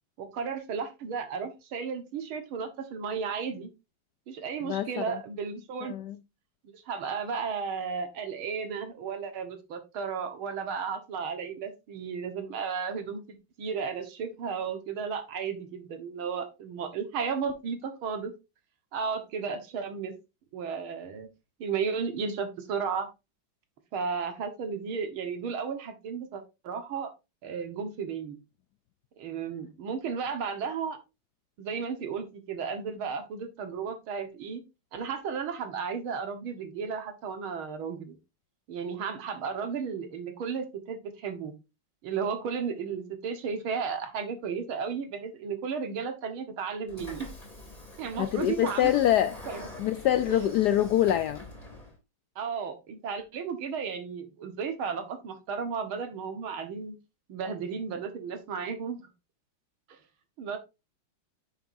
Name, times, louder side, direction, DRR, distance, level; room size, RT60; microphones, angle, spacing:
voice 1, 0.2-3.7 4.3-5.9 6.7-13.2 13.6-18.3 18.9-20.1 20.5-21.3 21.6-23.1 23.9-27.1 27.4-28.4 29.2-31.0 31.6-34.6 34.9-38.2 38.7-41.5 42.0-47.3 48.0-49.0 49.5-49.7 50.3-50.4 52.4-57.0 57.3-59.0 60.4-60.6, right 6 dB, 80° right, 2.3 m, -34 dB
voice 2, 4.6-5.2 5.9-6.2 48.2-49.4 49.8-51.4, left 11 dB, 80° left, 0.9 m, -25 dB
Train / Sliding door, 46.9-51.9, left 2 dB, 15° left, 3.0 m, -44 dB
9.0 x 7.2 x 2.6 m
omnidirectional pair, 2.2 m